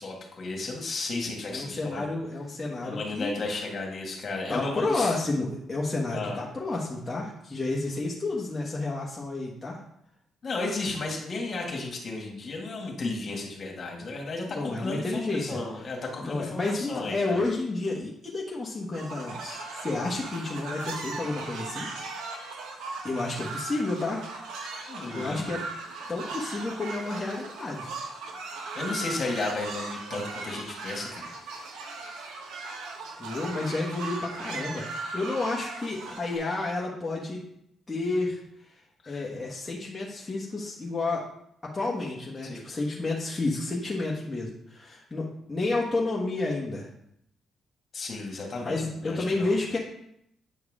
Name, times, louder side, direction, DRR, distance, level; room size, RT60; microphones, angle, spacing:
voice 1, 0.0-2.1 2.8-5.2 6.1-6.4 10.4-17.4 24.9-25.7 28.7-31.3 39.0-39.3 42.4-42.6 47.9-49.5, left 3 dB, 45° left, 0 dB, 1.9 m, -34 dB
voice 2, 1.5-3.3 4.5-9.8 14.5-15.6 16.2-21.9 23.0-24.3 25.1-25.6 26.1-27.9 33.2-37.4 37.9-38.4 39.1-41.3 41.6-46.9 48.6-49.8, left 2 dB, 20° left, -4 dB, 1.3 m, -30 dB
sound 1, 18.9-36.4, right 3 dB, 85° right, 1.0 m, -38 dB
8.3 x 4.6 x 3.7 m, 0.74 s
cardioid pair, 90°, 0 cm